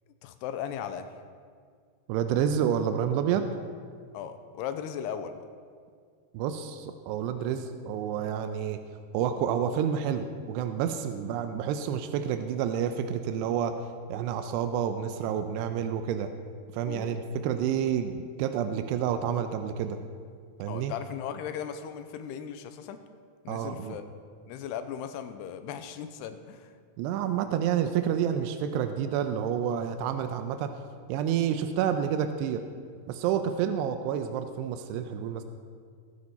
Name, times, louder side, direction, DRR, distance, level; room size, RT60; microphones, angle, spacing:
voice 1, 0.2-1.1 4.1-5.5 16.9-17.3 20.7-23.0 23.4-24.1 24.5-26.7, left 8 dB, 85° left, 9 dB, 2.7 m, -37 dB
voice 2, 2.1-3.5 6.3-8.8 9.1-13.7 14.1-16.3 16.7-20.0 20.6-20.9 23.5-24.0 27.0-30.7 31.1-32.6 33.1-35.4, right 8 dB, 85° right, 8 dB, 2.8 m, -29 dB
20.0 x 9.7 x 4.3 m, 2.1 s
omnidirectional pair, 4.8 m